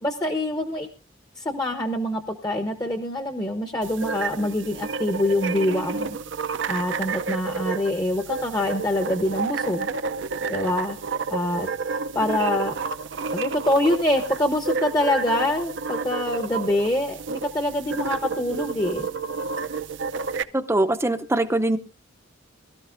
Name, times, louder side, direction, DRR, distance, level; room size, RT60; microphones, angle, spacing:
voice 1, 0.0-0.9 1.4-6.2 6.7-9.9 10.5-11.0 11.3-11.7 12.1-12.7 13.3-19.1, left 1 dB, 20° left, 1.0 m, -25 dB
sound 1, 3.8-20.4, right 5 dB, 65° right, 0.6 m, -30 dB
voice 2, 20.5-21.8, right 1 dB, 15° right, 0.7 m, -22 dB
22.5 x 13.0 x 2.6 m
head